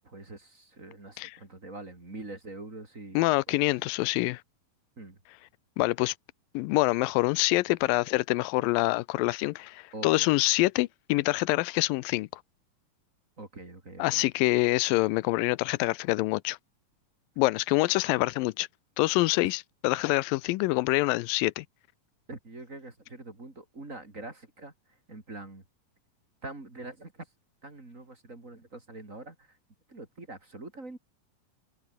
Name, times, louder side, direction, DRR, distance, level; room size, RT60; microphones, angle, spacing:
voice 1, 0.0-3.2 3.5-3.6 5.0-5.2 9.9-10.3 13.4-14.2 22.3-24.7 25.1-25.6 26.4-27.1 27.6-29.4 29.9-31.0, right 2 dB, 25° right, 3.6 m, -44 dB
voice 2, 3.2-4.4 5.8-6.1 6.5-12.3 14.0-16.6 17.4-18.7 19.0-21.7, left 20 dB, 90° left, 2.3 m, -26 dB
omnidirectional pair, 3.9 m